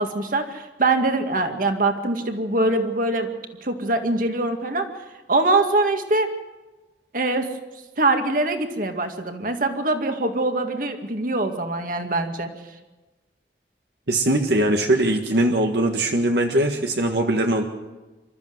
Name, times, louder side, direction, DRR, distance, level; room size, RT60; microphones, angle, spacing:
voice 1, 0.0-3.3 3.6-4.9 5.3-6.3 7.1-7.5 8.0-12.5, right 2 dB, 50° right, 6 dB, 2.1 m, -23 dB
voice 2, 14.1-17.6, right 1 dB, 70° right, 3 dB, 1.7 m, -21 dB
27.0 x 13.5 x 7.9 m, 1.2 s
head